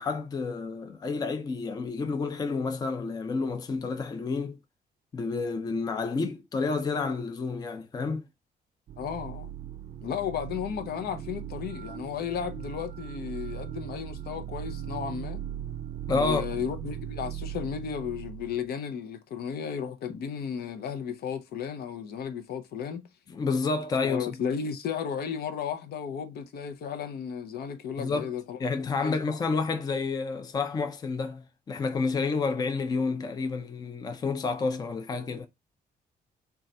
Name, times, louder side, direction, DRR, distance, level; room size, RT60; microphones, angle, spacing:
voice 1, 0.0-4.6 5.1-8.2 16.1-16.4 20.1-20.2 23.3-24.4 28.0-28.3 28.6-35.5, left 4 dB, 25° left, 0.4 m, -30 dB
sound 1, 8.9-18.7, right 11 dB, 45° right, 0.4 m, -38 dB
voice 2, 9.0-9.5 10.0-15.4 16.1-23.0 24.0-28.6 28.9-29.4, left 7 dB, 75° left, 0.6 m, -34 dB
3.8 x 2.3 x 4.1 m
cardioid pair, 160°, 16 cm